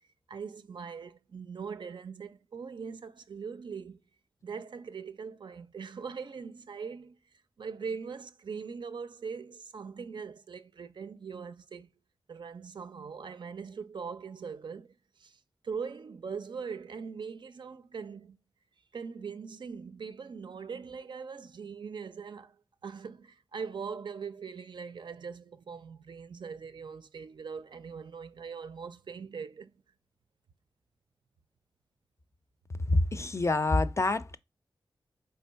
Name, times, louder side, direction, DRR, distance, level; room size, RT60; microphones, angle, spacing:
voice 1, 0.3-4.0 4.4-7.2 7.6-11.9 12.3-15.4 15.6-18.4 18.9-22.6 22.8-29.7, right 5 dB, 65° right, 0.4 m, -41 dB
voice 2, 32.9-34.4, left 2 dB, 35° left, 0.4 m, -26 dB
3.5 x 3.0 x 4.5 m
cardioid pair, 55°, 8 cm